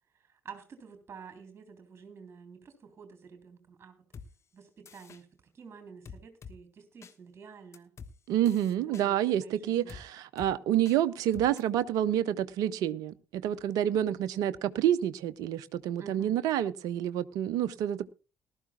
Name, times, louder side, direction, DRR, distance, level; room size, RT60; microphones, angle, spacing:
voice 1, 0.3-4.0 4.5-5.3 5.5-7.9 8.9-10.0 16.0-16.3, right 6 dB, 35° right, 3.4 m, -49 dB
sound 1, 4.1-4.3 4.9-5.2 6.1-6.6 7.0-7.1 7.7-8.1 8.5-9.1 9.9-10.0 10.4-10.5 10.9-11.0 11.3-11.6, left 6 dB, 40° left, 1.3 m, -47 dB
voice 2, 8.3-18.1, right 11 dB, 60° right, 0.6 m, -28 dB
19.5 x 12.5 x 2.3 m
figure-of-eight pair, 45°, 7 cm